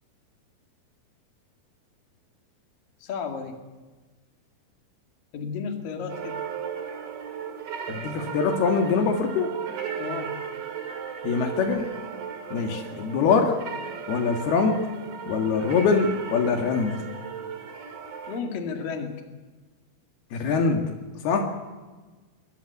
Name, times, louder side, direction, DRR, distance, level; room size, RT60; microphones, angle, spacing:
voice 1, 3.0-3.6 5.3-6.4 10.0-10.4 18.3-19.2, left 5 dB, 65° left, 4 dB, 3.9 m, -33 dB
sound 1, 6.1-18.4, right 7 dB, 45° right, 2.8 m, -36 dB
voice 2, 7.9-9.5 11.2-11.9 12.5-13.6 14.1-14.8 15.3-17.0 20.3-20.9 21.2-21.5, left 5 dB, 80° left, 3 dB, 4.0 m, -23 dB
22.5 x 18.5 x 9.7 m, 1.3 s
omnidirectional pair, 4.4 m